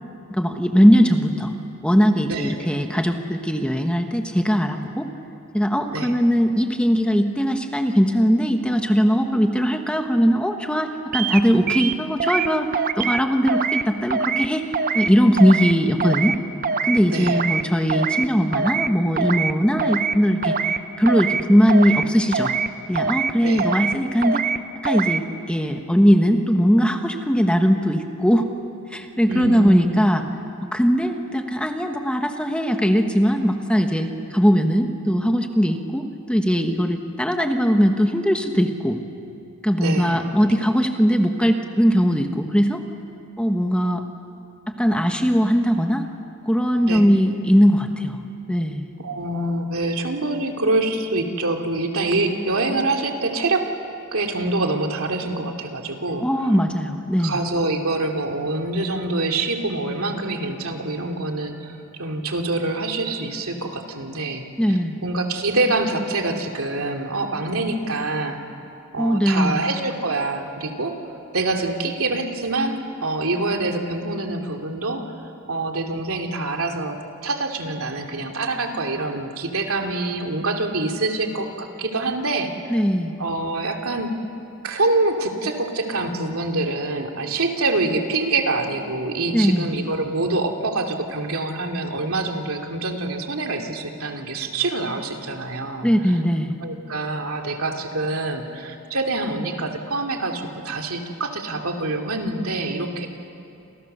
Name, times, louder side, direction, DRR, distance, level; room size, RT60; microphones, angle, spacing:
voice 1, 0.3-1.5 1.8-5.1 5.5-16.4 16.8-20.5 21.0-22.5 22.9-24.4 24.8-28.5 28.9-30.2 30.7-39.0 39.6-42.8 43.4-44.0 44.8-46.1 46.4-48.2 48.5-48.9 56.2-57.4 64.6-65.0 69.0-69.6 82.7-83.1 89.3-89.7 95.8-96.5, equal, 5° left, 5 dB, 1.3 m, -20 dB
sound 1, 11.1-11.4 11.7-12.5 12.7-13.2 13.5-13.8 14.1-14.5 14.7-15.1 15.4-15.7 16.0-16.4 16.6-17.0 17.3-17.6 17.9-18.3 18.5-18.9 19.2-19.5 19.8-20.2 20.4-20.8 21.1-21.4 21.7-22.0 22.3-22.7 23.0-23.3 23.6-23.9 24.2-24.6 24.9-25.2, right 5 dB, 40° right, 0.7 m, -23 dB
voice 2, 17.1-17.4 23.4-23.7 29.3-30.0 39.8-40.2 46.8-47.0 49.0-53.7 54.1-56.5 57.2-68.4 68.9-71.0 71.3-75.0 75.5-82.8 83.2-84.1 84.6-95.9 96.6-103.1, right 2 dB, 80° right, 3 dB, 2.7 m, -25 dB
29.5 x 27.5 x 6.8 m, 2.6 s
head